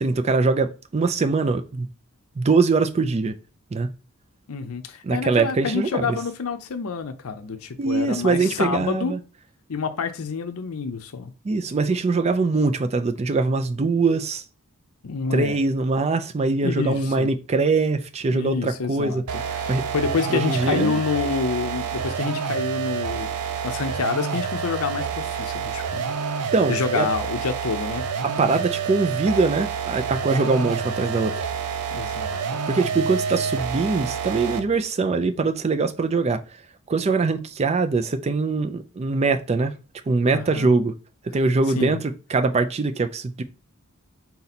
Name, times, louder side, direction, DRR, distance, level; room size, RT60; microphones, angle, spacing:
voice 1, 0.0-1.9 2.4-3.4 3.7-3.9 5.0-6.2 7.8-9.2 11.4-14.4 15.3-19.9 20.3-21.0 26.5-27.1 28.2-31.4 32.7-36.4 36.9-39.7 40.1-40.9 41.3-43.4, right 3 dB, 30° right, 0.4 m, -22 dB
voice 2, 4.5-9.1 9.7-11.3 15.0-15.6 16.6-17.3 18.3-19.2 19.5-26.0 26.7-28.0 31.9-32.4 40.3-40.7 41.8-42.0, left 5 dB, 70° left, 0.6 m, -28 dB
sound 1, 19.3-34.8, right 6 dB, 90° right, 0.5 m, -28 dB
4.0 x 2.8 x 4.1 m
head